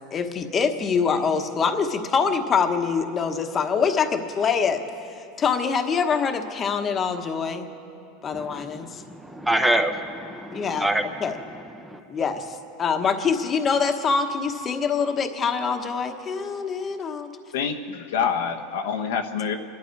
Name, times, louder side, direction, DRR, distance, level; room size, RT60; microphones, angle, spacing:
voice 1, 0.1-4.8 5.2-7.7 8.2-9.0 10.5-10.9 11.2-11.4 12.1-17.3, left 5 dB, 25° left, 6 dB, 1.2 m, -24 dB
voice 2, 8.3-11.0 11.8-12.0, right 1 dB, 5° right, 6 dB, 0.8 m, -26 dB
voice 3, 17.5-19.6, left 6 dB, 85° left, 4 dB, 1.1 m, -26 dB
27.0 x 11.5 x 4.6 m, 2.6 s
supercardioid pair, 130°, 0 cm